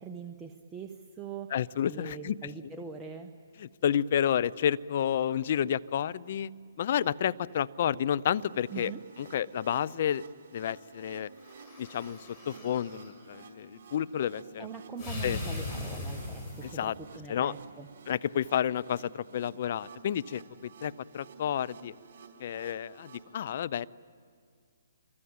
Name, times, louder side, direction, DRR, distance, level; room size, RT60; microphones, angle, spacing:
voice 1, 0.0-1.6 1.8-3.3 8.7-9.0 14.6-17.9, right 5 dB, 10° right, 2 dB, 1.2 m, -42 dB
voice 2, 1.5-2.4 3.6-6.5 6.8-8.9 9.2-10.2 10.5-11.3 11.8-14.7 15.2-15.4 16.7-16.9 17.3-17.5 18.1-21.9 22.4-23.9, left 9 dB, 50° left, 16 dB, 0.6 m, -30 dB
sound 1, 8.4-23.2, right 5 dB, 55° right, 4.6 m, -52 dB
sound 2, 11.4-13.1 15.0-16.9, left 2 dB, 15° left, 6.3 m, -39 dB
27.0 x 23.0 x 8.9 m, 2.1 s
hypercardioid pair, 140°, 0 cm